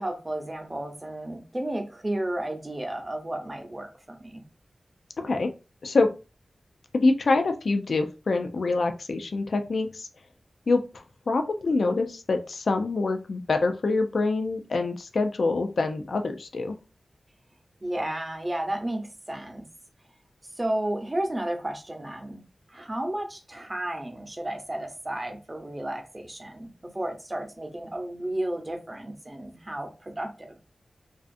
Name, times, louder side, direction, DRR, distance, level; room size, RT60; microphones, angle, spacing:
voice 1, 0.0-4.4 17.8-19.6 20.6-22.4 22.7-30.6, right 1 dB, 25° right, 0.7 m, -33 dB
voice 2, 5.2-5.5 5.8-6.1 6.9-10.1 10.7-16.8, left 3 dB, 70° left, 0.3 m, -25 dB
2.4 x 2.4 x 2.5 m
wide cardioid pair, 70°, 0 cm